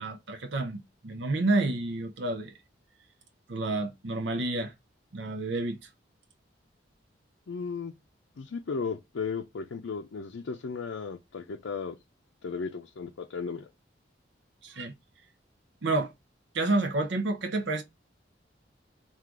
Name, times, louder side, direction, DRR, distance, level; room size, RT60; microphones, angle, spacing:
voice 1, 0.0-2.5 3.5-4.7 5.1-5.8 14.6-14.9 15.8-16.1 16.5-17.8, right 2 dB, 75° right, 0.7 m, -29 dB
voice 2, 7.5-7.9 8.4-12.0 12.4-13.7, left 5 dB, 80° left, 0.5 m, -35 dB
3.7 x 2.4 x 4.5 m
head